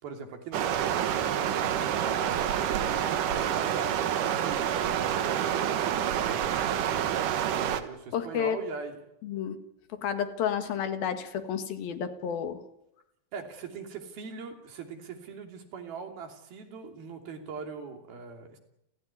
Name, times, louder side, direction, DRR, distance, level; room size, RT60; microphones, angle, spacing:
voice 1, 0.0-1.1 1.5-2.3 2.8-6.2 6.8-9.0 13.3-18.6, right 5 dB, 90° right, 4 dB, 5.0 m, -41 dB
Stream, 0.5-7.8, right 9 dB, 70° right, 2.7 m, -28 dB
voice 2, 8.1-8.6 9.2-9.6 10.0-12.6, left 8 dB, 80° left, 8 dB, 3.7 m, -31 dB
29.5 x 15.5 x 9.7 m, 0.83 s
omnidirectional pair, 4.2 m